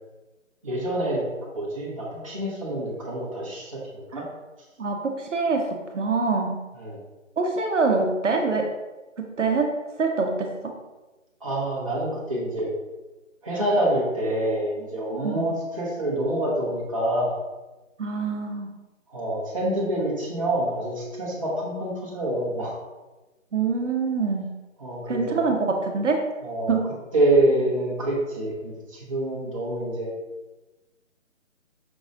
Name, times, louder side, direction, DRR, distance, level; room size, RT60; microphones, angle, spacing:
voice 1, 0.6-1.2 1.5-4.2 6.8-7.0 11.4-12.7 13.4-17.4 19.1-22.7 24.8-25.4 26.4-26.8 27.1-30.1, right 1 dB, 25° right, -6 dB, 0.7 m, -26 dB
voice 2, 4.8-6.6 7.4-8.7 9.2-9.7 10.0-10.5 15.2-15.4 18.0-18.7 23.5-24.5 25.1-26.2 26.7-26.8, right 4 dB, 70° right, 3 dB, 0.7 m, -25 dB
5.2 x 2.9 x 2.4 m, 1.1 s
figure-of-eight pair, 165°, 39 cm